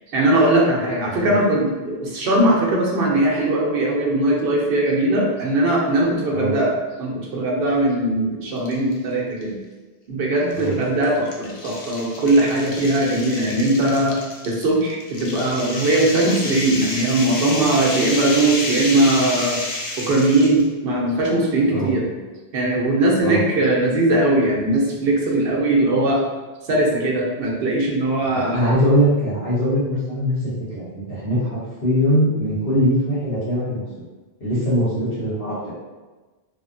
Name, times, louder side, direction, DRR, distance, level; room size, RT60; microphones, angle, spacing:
voice 1, 0.1-6.7 7.0-9.6 10.1-14.2 14.4-19.6 20.0-22.0 22.5-26.2 26.6-28.6, right 1 dB, 65° right, -2 dB, 0.8 m, -20 dB
sound 1, 8.6-9.0 9.4-9.5 10.5-20.6, left 2 dB, 55° left, 0.3 m, -30 dB
voice 2, 28.3-34.0 34.4-35.7, equal, 75° left, -10 dB, 1.6 m, -21 dB
3.3 x 2.0 x 2.5 m, 1.2 s
omnidirectional pair, 1.1 m